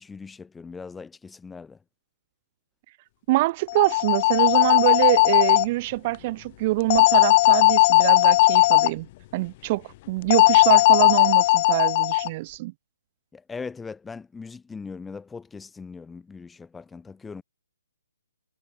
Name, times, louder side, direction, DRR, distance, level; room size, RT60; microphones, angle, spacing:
voice 1, 0.0-1.8 13.3-17.4, left 5 dB, 5° left, 3.5 m, -40 dB
voice 2, 3.3-9.1 9.3-12.7, right 20 dB, 35° right, 5.5 m, -25 dB
sound 1, 3.7-5.6 6.9-8.9 10.3-12.3, left 18 dB, 35° left, 0.7 m, -17 dB
hypercardioid pair, 145°, 0 cm